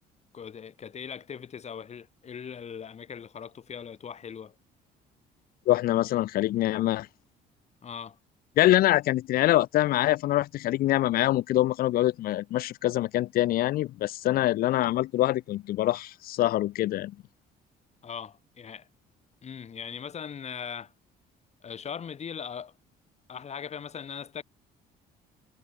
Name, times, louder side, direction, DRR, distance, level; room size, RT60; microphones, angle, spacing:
voice 1, 0.3-4.5 7.8-8.2 18.0-18.9 19.4-20.9 21.6-22.7 23.3-24.4, left 7 dB, 40° left, 5.6 m, -40 dB
voice 2, 5.7-7.1 8.6-17.1, left 15 dB, 60° left, 0.5 m, -24 dB
cardioid pair, 110°, 17 cm